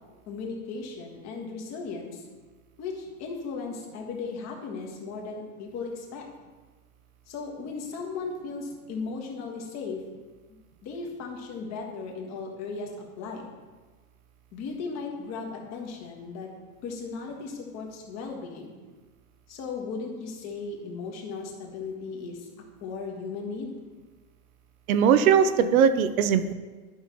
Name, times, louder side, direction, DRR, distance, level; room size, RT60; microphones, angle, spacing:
voice 1, 0.3-2.2 2.8-6.3 7.3-10.0 10.8-12.9 13.2-13.5 14.5-16.5 16.8-18.7 19.5-22.5 22.8-23.7, left 4 dB, 40° left, 1 dB, 1.7 m, -36 dB
voice 2, 24.9-26.5, right 7 dB, 75° right, 11 dB, 0.8 m, -20 dB
11.5 x 5.6 x 3.1 m, 1.3 s
supercardioid pair, 125°, 42 cm